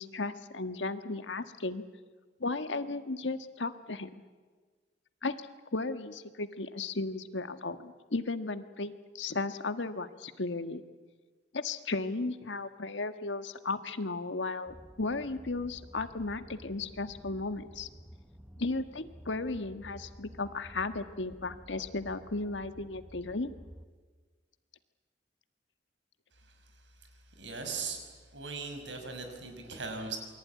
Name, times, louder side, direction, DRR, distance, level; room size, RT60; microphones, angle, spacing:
voice 1, 0.0-1.8 2.4-4.1 5.2-10.8 11.5-17.9 18.6-23.5, left 3 dB, 90° left, 10 dB, 1.5 m, -35 dB
sound 1, 14.7-23.9, equal, 5° right, 1.0 m, -52 dB
voice 2, 27.4-28.1 28.3-30.2, right 4 dB, 85° right, 6 dB, 5.7 m, -38 dB
27.5 x 23.0 x 9.5 m, 1.4 s
head